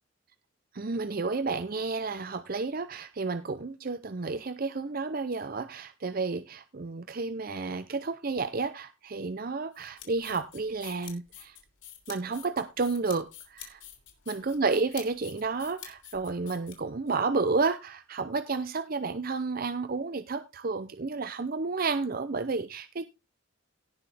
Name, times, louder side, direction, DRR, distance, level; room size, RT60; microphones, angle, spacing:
voice 1, 0.7-11.6 12.1-13.8 14.3-23.1, right 4 dB, 45° right, 0.6 m, -31 dB
sound 1, 9.7-17.2, left 10 dB, 65° left, 3.3 m, -47 dB
17.5 x 6.1 x 3.4 m
head